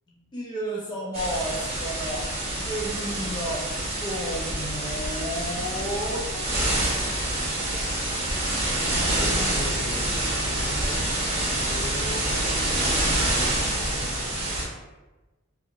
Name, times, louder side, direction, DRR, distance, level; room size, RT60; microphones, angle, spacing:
voice 1, 0.1-2.3 2.6-3.7 4.0-6.7, equal, 20° left, -6 dB, 0.4 m, -32 dB
sound 1, 1.1-14.6, right 1 dB, 30° right, 0.6 m, -27 dB
voice 2, 8.7-10.1 10.4-14.2, left 2 dB, 70° left, -5 dB, 0.8 m, -39 dB
2.7 x 2.7 x 2.5 m, 1.1 s
head